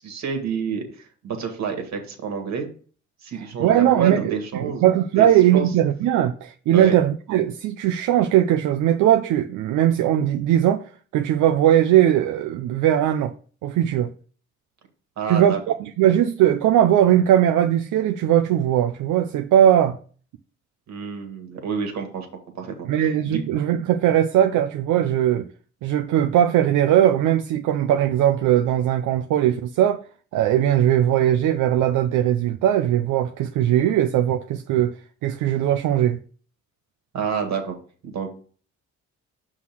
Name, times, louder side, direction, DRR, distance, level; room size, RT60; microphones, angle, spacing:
voice 1, 0.0-2.7 3.2-4.9 5.2-5.3 5.5-5.7 6.7-7.0 15.2-15.6 20.9-22.3 22.5-23.4 37.1-37.8 38.0-38.3, right 6 dB, 65° right, 1.9 m, -28 dB
voice 2, 3.6-10.8 11.1-13.3 13.6-14.1 15.3-20.0 22.8-25.5 25.8-30.0 30.3-34.9 35.2-36.2, right 11 dB, 85° right, 0.6 m, -19 dB
5.9 x 3.9 x 6.0 m
cardioid pair, 90°, 30 cm